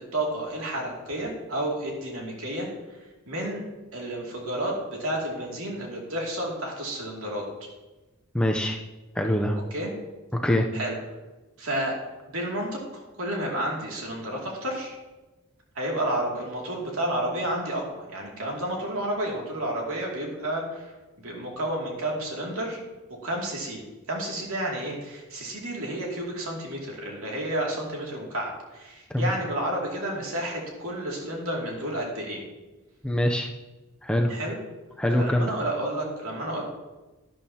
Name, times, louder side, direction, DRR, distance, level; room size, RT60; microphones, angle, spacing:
voice 1, 0.0-2.7 3.3-3.6 3.9-7.4 9.7-9.9 10.7-11.0 11.6-12.0 12.3-15.0 15.7-20.9 21.2-22.8 23.2-23.8 24.1-32.4 34.3-34.6 35.2-36.6, right 1 dB, 75° right, -1 dB, 2.5 m, -31 dB
voice 2, 8.3-8.8 9.2-9.5 10.4-10.7 29.1-29.3 33.0-33.5 34.0-34.3 35.0-35.5, left 1 dB, 5° left, 2 dB, 0.6 m, -23 dB
11.5 x 10.5 x 2.8 m, 1.2 s
head